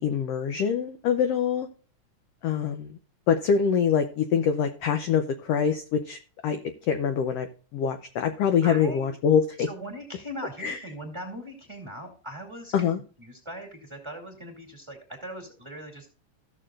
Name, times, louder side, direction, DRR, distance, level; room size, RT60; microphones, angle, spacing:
voice 1, 0.0-1.7 2.4-2.9 3.3-6.6 6.9-7.5 7.7-9.7 10.6-10.8 12.7-13.0, left 7 dB, 75° left, 7 dB, 1.5 m, -24 dB
voice 2, 8.6-9.1 9.7-12.7 13.2-16.1, equal, 10° right, 1 dB, 1.9 m, -40 dB
16.0 x 6.6 x 2.4 m, 0.38 s
omnidirectional pair, 3.6 m